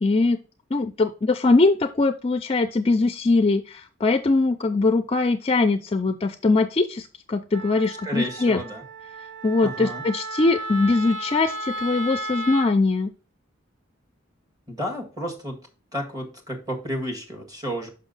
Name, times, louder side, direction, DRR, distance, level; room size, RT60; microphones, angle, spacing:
voice 1, 0.0-0.4 0.7-8.6 9.4-13.1, left 3 dB, 30° left, 9 dB, 0.4 m, -21 dB
Wind instrument woodwind instrument, 7.5-12.7, right 1 dB, 60° right, 0.5 m, -34 dB
voice 2, 8.0-8.8 9.6-10.0 14.7-15.6 15.9-17.9, equal, 20° right, 3 dB, 1.7 m, -31 dB
6.2 x 5.5 x 4.0 m, 0.34 s
head